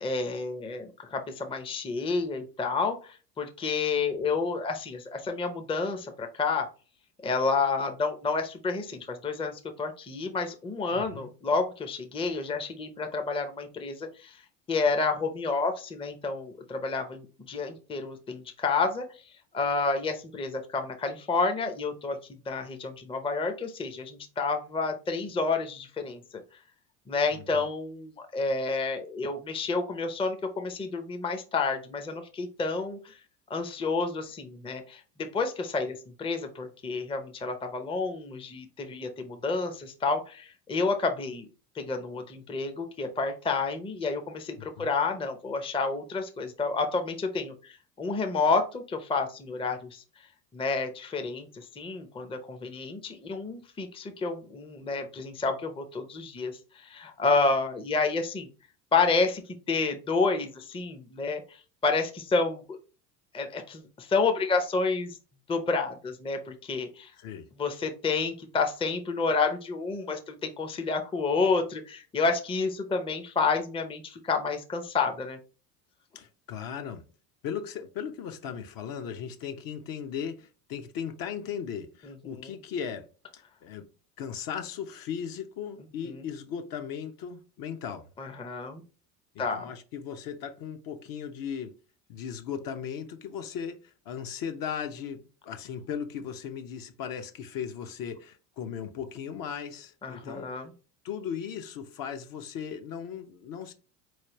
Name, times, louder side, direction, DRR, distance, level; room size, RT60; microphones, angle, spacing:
voice 1, 0.0-3.0 3.4-6.7 7.2-14.3 14.7-19.1 19.5-22.2 22.5-26.2 27.1-33.0 33.5-41.5 41.8-50.0 50.5-56.5 56.8-58.5 58.9-59.4 59.7-62.6 63.3-65.2 65.5-67.1 67.6-75.4 82.0-82.5 86.1-86.2 88.2-88.8 89.4-89.7 100.0-100.7, left 4 dB, 10° left, 0.6 m, -29 dB
voice 2, 10.9-11.3 27.3-27.6 44.6-44.9 67.1-67.5 76.1-77.0 77.4-83.1 83.3-83.9 84.2-88.1 89.3-91.7 92.1-100.5 101.0-103.7, left 7 dB, 45° left, 0.8 m, -37 dB
4.3 x 3.2 x 3.0 m
hypercardioid pair, 70°, 49 cm